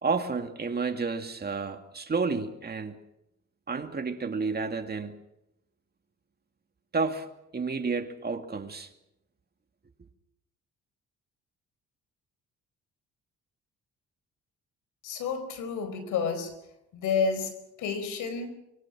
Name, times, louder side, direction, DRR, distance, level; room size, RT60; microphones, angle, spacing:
voice 1, 0.0-3.0 3.7-5.2 6.9-7.3 7.5-8.9, right 4 dB, 30° right, 2.4 m, -30 dB
voice 2, 15.0-16.5 16.9-18.5, left 5 dB, 90° left, 4.6 m, -30 dB
24.0 x 24.0 x 6.3 m
cardioid pair, 90°, 30 cm